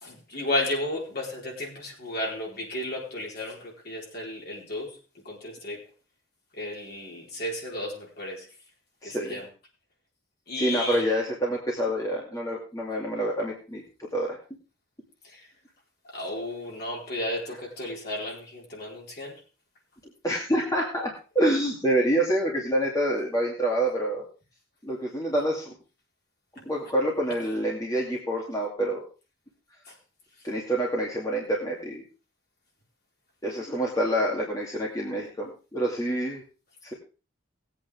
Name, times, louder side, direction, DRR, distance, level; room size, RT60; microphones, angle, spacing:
voice 1, 0.0-5.0 5.2-5.8 6.6-8.5 9.0-9.5 10.5-11.0 15.2-15.4 16.1-19.4 29.9-30.0, left 1 dB, 50° left, -2 dB, 4.4 m, -33 dB
voice 2, 9.0-9.4 10.6-13.8 14.1-14.4 20.2-24.2 24.8-25.7 26.7-29.1 30.4-32.0 33.4-36.4 36.8-36.9, right 1 dB, 15° left, -3 dB, 2.4 m, -27 dB
19.0 x 8.6 x 3.5 m, 0.34 s
head